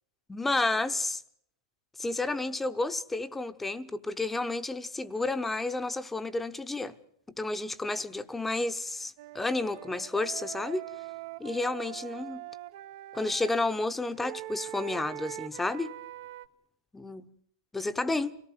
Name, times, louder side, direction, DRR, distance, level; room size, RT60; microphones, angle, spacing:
voice 1, 0.3-1.2 2.0-7.0 7.3-10.8 11.4-12.4 13.1-15.9 16.9-17.3 17.7-18.4, left 2 dB, 5° left, 1.0 m, -31 dB
Wind instrument woodwind instrument, 9.2-13.6 14.2-16.5, right 16 dB, 55° right, 1.0 m, -42 dB
25.0 x 18.0 x 9.0 m
hypercardioid pair, 140°, 2 cm